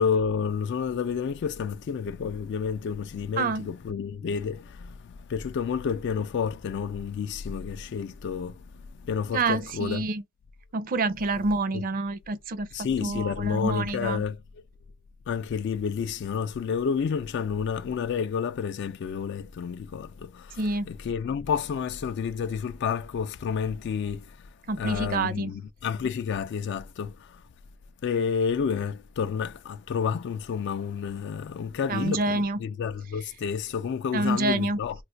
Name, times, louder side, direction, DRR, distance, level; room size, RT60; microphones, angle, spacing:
voice 1, 0.0-10.1 11.7-11.8 12.7-14.6 15.3-24.5 24.8-27.4 28.0-34.9, left 6 dB, 60° left, 0.3 m, -30 dB
voice 2, 3.4-3.7 9.3-10.2 10.7-12.7 13.0-14.2 20.6-20.9 24.7-25.5 31.9-32.6 34.1-34.8, right 3 dB, 45° right, 0.5 m, -27 dB
2.4 x 2.3 x 3.9 m
head